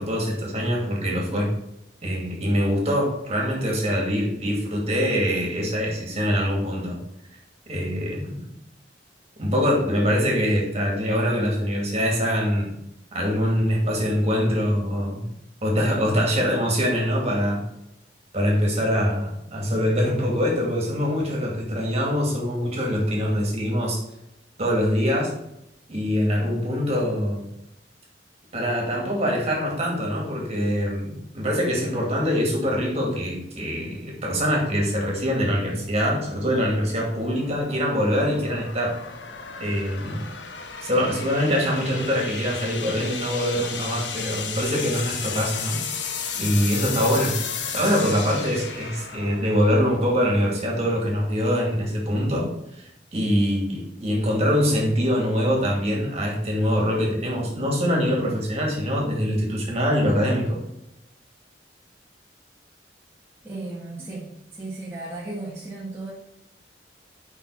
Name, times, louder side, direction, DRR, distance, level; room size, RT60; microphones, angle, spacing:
voice 1, 0.0-1.5 2.0-7.0 7.7-8.4 9.4-12.7 13.1-15.2 15.6-17.6 18.3-24.0 24.6-25.3 25.9-27.5 28.5-38.9 39.6-40.2 40.8-45.8 46.3-47.3 47.7-52.5 52.7-60.6, equal, 35° right, -1 dB, 2.5 m, -24 dB
sound 1, 34.9-50.3, left 6 dB, 85° left, 1.0 m, -34 dB
voice 2, 63.4-66.1, right 2 dB, 15° right, -7 dB, 1.7 m, -35 dB
6.0 x 5.6 x 5.6 m, 0.84 s
head